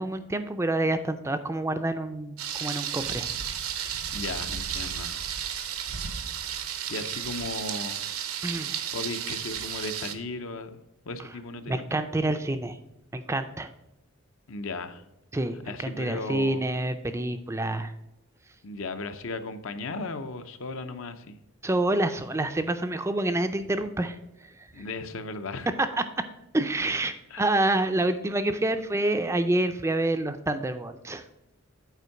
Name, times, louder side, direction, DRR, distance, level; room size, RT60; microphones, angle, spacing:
voice 1, 0.0-3.3 3.8-3.9 8.4-8.7 11.7-12.8 13.1-13.7 15.3-17.9 21.6-24.2 26.5-31.2, right 2 dB, 15° right, 9 dB, 0.4 m, -27 dB
Thunder, 2.4-10.1, right 9 dB, 80° right, 0.8 m, -33 dB
voice 2, 4.1-5.2 6.9-8.0 8.8-11.9 14.5-15.0 15.7-16.6 18.6-21.4 24.7-25.7 26.8-27.0 27.3-27.5, left 3 dB, 65° left, 8 dB, 0.7 m, -36 dB
8.2 x 4.5 x 5.7 m, 0.87 s
head